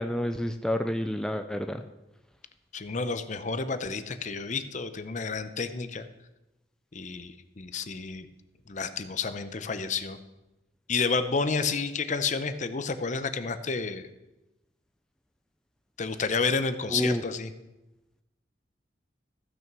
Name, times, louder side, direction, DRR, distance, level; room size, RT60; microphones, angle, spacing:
voice 1, 0.0-1.8 16.9-17.2, left 1 dB, 5° left, 7 dB, 0.4 m, -29 dB
voice 2, 2.7-6.1 6.9-8.3 8.7-10.2 10.9-14.1 16.0-17.5, left 4 dB, 40° left, 11 dB, 0.7 m, -30 dB
14.5 x 6.3 x 6.1 m, 1.0 s
head